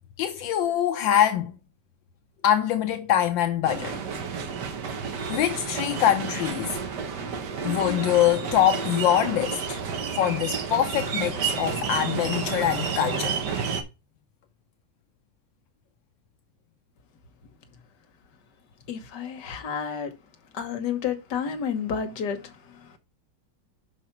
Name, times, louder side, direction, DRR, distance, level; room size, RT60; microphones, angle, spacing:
voice 1, 0.2-1.5 2.4-4.0 5.3-6.8 7.6-9.8 10.1-13.4, left 11 dB, 85° left, 1.4 m, -24 dB
sound 1, 3.6-13.8, right 6 dB, 65° right, 1.7 m, -30 dB
voice 2, 18.9-20.1 20.5-23.0, left 7 dB, 65° left, 1.7 m, -31 dB
5.7 x 5.1 x 5.8 m
omnidirectional pair, 2.0 m